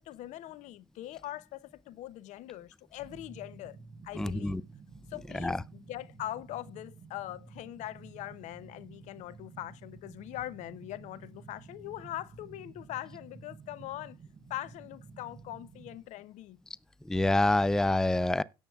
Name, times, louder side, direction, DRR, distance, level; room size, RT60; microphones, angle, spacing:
voice 1, 0.0-3.8 4.0-4.6 5.1-14.2 14.5-16.6, left 14 dB, 60° left, 0.7 m, -42 dB
sound 1, 3.0-16.0, right 4 dB, 35° right, 1.2 m, -52 dB
voice 2, 4.2-4.6 5.3-5.6 17.0-18.4, left 2 dB, 5° left, 0.5 m, -26 dB
17.0 x 7.1 x 2.4 m
hypercardioid pair, 70°, 14 cm